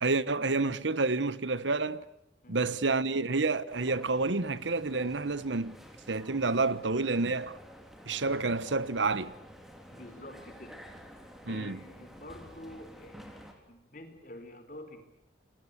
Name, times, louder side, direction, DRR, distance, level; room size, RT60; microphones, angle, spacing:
voice 1, 0.0-2.0 2.5-5.8 6.1-7.6 8.1-9.3 11.5-11.8, right 3 dB, 85° right, 1.2 m, -29 dB
sound 1, 3.7-13.5, equal, ahead, 3.7 m, -51 dB
voice 2, 9.9-10.8 11.5-15.1, left 1 dB, 45° left, 4.4 m, -48 dB
28.5 x 22.0 x 8.5 m
head